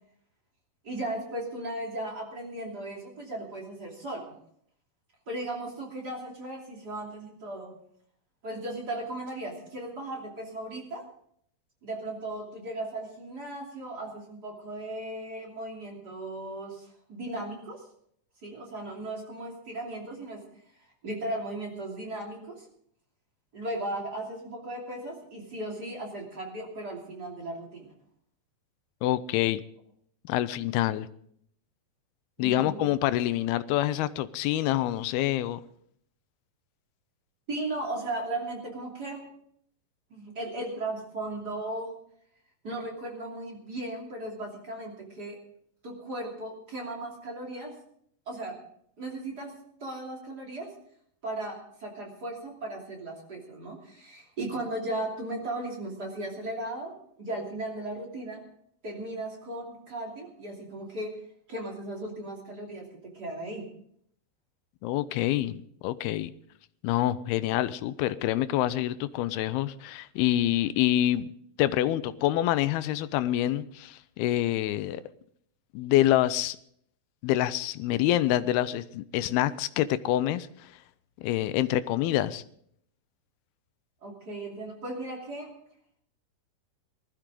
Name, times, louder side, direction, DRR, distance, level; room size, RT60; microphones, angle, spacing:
voice 1, 0.8-4.4 5.3-7.7 8.4-11.1 11.8-17.8 18.4-20.4 21.0-22.6 23.5-27.9 32.4-32.9 37.5-39.2 40.1-42.0 42.6-45.4 45.8-47.7 48.3-48.6 49.0-49.5 49.8-50.7 51.2-58.4 58.8-61.1 61.5-63.7 84.0-85.5, right 1 dB, 30° right, 2.9 m, -36 dB
voice 2, 29.0-29.6 30.3-31.1 32.4-35.6 64.8-66.3 66.8-71.3 71.6-75.0 75.7-76.6 77.2-80.7 81.2-82.4, left 13 dB, 85° left, 2.6 m, -26 dB
19.5 x 13.5 x 3.8 m
omnidirectional pair, 4.4 m